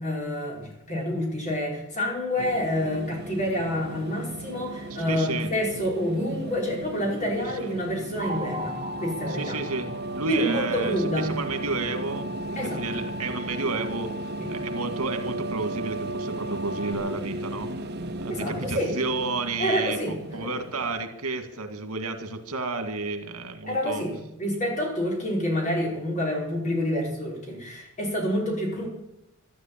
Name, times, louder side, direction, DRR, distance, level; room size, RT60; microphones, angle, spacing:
voice 1, 0.0-9.6 10.3-11.3 12.6-12.8 14.4-14.5 18.3-19.0 19.6-20.5 23.7-28.9, left 1 dB, 35° left, -2 dB, 5.3 m, -28 dB
sound 1, 2.4-21.0, right 1 dB, 50° right, 1.3 m, -36 dB
voice 2, 4.9-5.5 7.4-7.8 9.3-14.1 14.5-17.7 18.2-24.0, right 3 dB, 85° right, 7 dB, 2.1 m, -31 dB
sound 2, 8.2-16.9, right 2 dB, 25° right, 2.4 m, -36 dB
13.0 x 12.0 x 8.8 m, 0.88 s
head